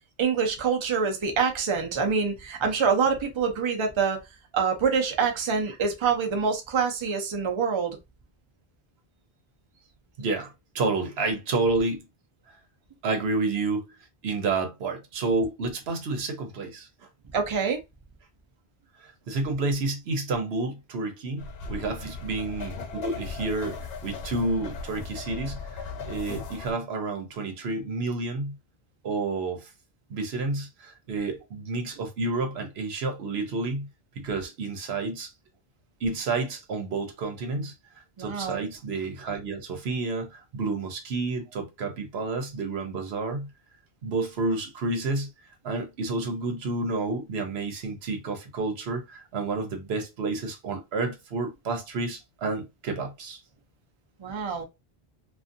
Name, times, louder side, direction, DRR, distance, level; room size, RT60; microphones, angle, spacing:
voice 1, 0.2-4.2 4.5-8.0 17.3-17.8 22.0-22.1 38.2-38.6 54.2-54.6, right 5 dB, 35° right, 0.5 m, -26 dB
voice 2, 10.2-12.0 13.0-13.9 14.2-16.9 19.0-28.5 29.0-29.7 30.1-33.9 34.2-35.3 36.0-37.7 38.2-43.5 44.0-45.3 45.6-53.4, right 3 dB, 85° right, 1.0 m, -30 dB
sound 1, 21.4-26.7, left 4 dB, 75° left, 0.8 m, -37 dB
2.6 x 2.5 x 2.5 m
omnidirectional pair, 1.0 m